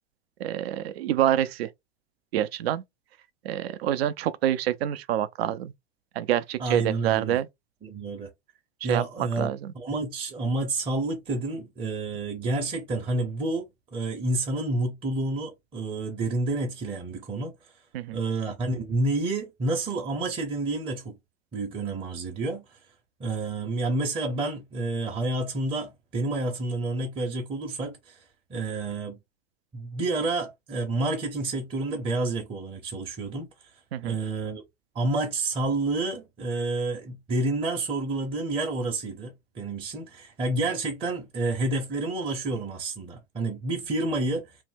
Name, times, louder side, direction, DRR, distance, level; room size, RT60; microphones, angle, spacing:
voice 1, 0.4-1.7 2.3-2.8 3.4-5.7 6.2-7.5 8.9-9.7 17.9-18.2 33.9-34.2, right 11 dB, 70° right, 0.5 m, -27 dB
voice 2, 6.6-7.4 7.8-8.3 8.8-9.5 9.7-13.7 13.9-17.5 18.1-21.2 21.5-22.8 23.2-28.2 28.5-29.2 29.7-33.5 34.0-34.6 34.9-44.6, right 2 dB, 15° right, 0.6 m, -29 dB
2.6 x 2.1 x 3.3 m
hypercardioid pair, 100°, 32 cm